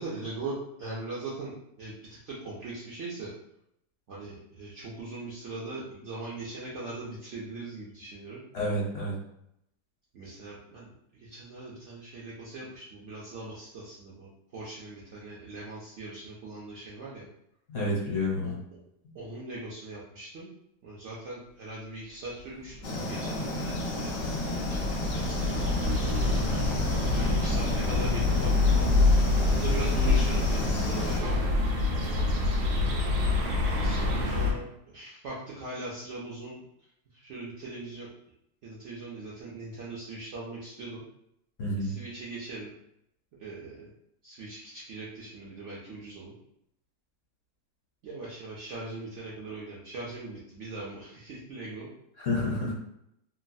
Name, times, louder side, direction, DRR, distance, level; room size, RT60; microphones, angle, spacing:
voice 1, 0.0-3.3 4.1-8.4 10.1-17.3 18.4-18.5 19.1-20.5 20.8-24.4 24.7-25.8 26.9-29.1 29.4-31.5 33.4-36.7 37.1-38.1 38.6-41.0 41.8-42.7 43.4-43.9 44.2-46.3 48.0-51.9, right 2 dB, 65° right, -7 dB, 0.7 m, -40 dB
voice 2, 8.5-9.1 17.7-18.6 41.6-41.9 52.2-52.7, left 1 dB, 55° left, -5 dB, 1.1 m, -29 dB
sound 1, 22.7-34.5, left 2 dB, 80° right, 1.2 m, -26 dB
sound 2, 22.8-31.2, left 2 dB, 70° left, 0.7 m, -33 dB
3.0 x 2.3 x 2.5 m, 0.78 s
omnidirectional pair, 1.8 m